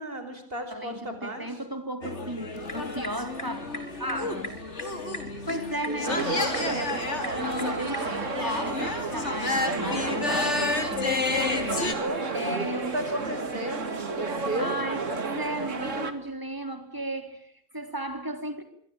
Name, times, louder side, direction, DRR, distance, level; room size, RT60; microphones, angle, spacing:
voice 1, 0.0-1.5 4.9-6.5 11.1-14.7, right 1 dB, 45° right, 8 dB, 5.1 m, -36 dB
voice 2, 0.7-4.6 5.5-12.0 12.3-13.0 14.6-18.6, right 1 dB, 15° right, 7 dB, 3.3 m, -36 dB
sound 1, 2.0-11.9, left 3 dB, 55° left, 3.3 m, -31 dB
sound 2, 2.5-8.1, left 1 dB, 35° left, 4.2 m, -42 dB
sound 3, 6.0-16.1, right 4 dB, 65° right, 2.5 m, -32 dB
26.0 x 23.5 x 8.9 m, 0.66 s
omnidirectional pair, 1.4 m